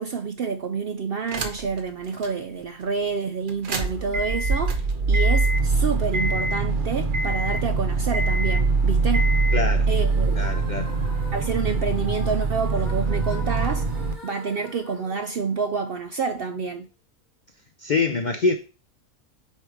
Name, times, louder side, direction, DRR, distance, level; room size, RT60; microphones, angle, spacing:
voice 1, 0.0-9.3 9.9-10.5 11.3-13.9 14.2-16.9, right 5 dB, 65° right, 0.6 m, -28 dB
sound 1, 1.3-1.8 2.2-2.3 3.5-14.1, right 3 dB, 45° right, 0.9 m, -23 dB
voice 2, 9.5-9.9 10.3-10.9 17.8-18.5, left 4 dB, 75° left, 0.4 m, -24 dB
sound 2, 9.9-16.0, left 2 dB, 30° left, 1.7 m, -43 dB
8.3 x 3.3 x 4.8 m
omnidirectional pair, 1.5 m